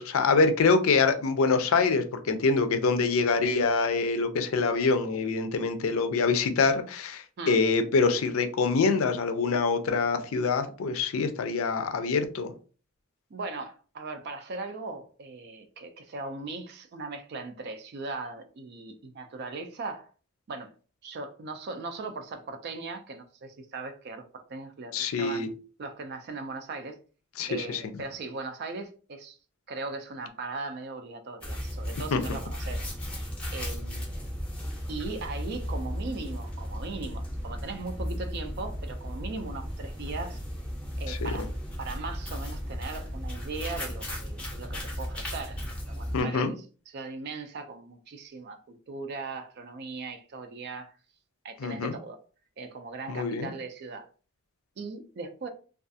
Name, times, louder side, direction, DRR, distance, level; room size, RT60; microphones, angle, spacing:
voice 1, 0.0-12.5 24.9-25.5 27.4-27.8 32.1-32.2 41.1-41.5 46.1-46.5 51.6-51.9 53.1-53.5, left 4 dB, 75° left, 0.4 m, -25 dB
voice 2, 13.3-20.1 20.5-20.7 21.0-25.5 25.8-27.0 27.5-29.4 29.7-32.9 33.5-34.1 34.9-40.4 41.0-41.5 41.8-50.9 51.4-52.2 52.6-54.1 54.8-55.5, right 3 dB, 50° right, 0.3 m, -39 dB
sound 1, 31.4-46.2, equal, 5° left, 0.6 m, -35 dB
2.4 x 2.3 x 2.6 m
head